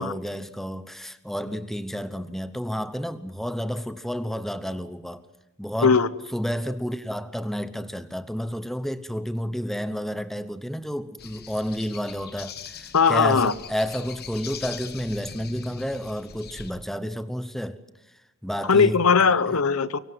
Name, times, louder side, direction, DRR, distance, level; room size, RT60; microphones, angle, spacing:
voice 1, 0.0-5.2 5.6-6.0 6.3-17.8 18.4-19.0, equal, ahead, 0.9 m, -31 dB
sound 1, 11.2-16.7, left 7 dB, 45° left, 1.3 m, -41 dB
voice 2, 12.9-13.5 18.6-20.0, left 5 dB, 80° left, 0.9 m, -19 dB
24.0 x 24.0 x 7.7 m
head